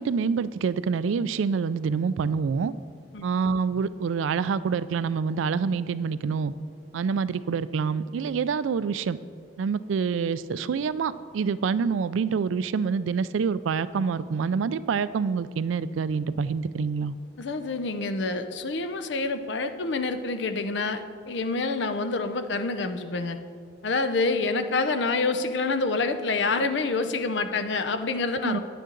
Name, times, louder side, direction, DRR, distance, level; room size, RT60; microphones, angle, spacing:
voice 1, 0.0-2.7 3.2-6.5 6.9-9.2 9.6-17.1 28.4-28.6, right 5 dB, 85° right, 15 dB, 0.3 m, -26 dB
voice 2, 17.4-23.4 23.8-28.6, left 3 dB, 70° left, 9 dB, 0.6 m, -27 dB
9.5 x 9.1 x 3.9 m, 2.1 s
head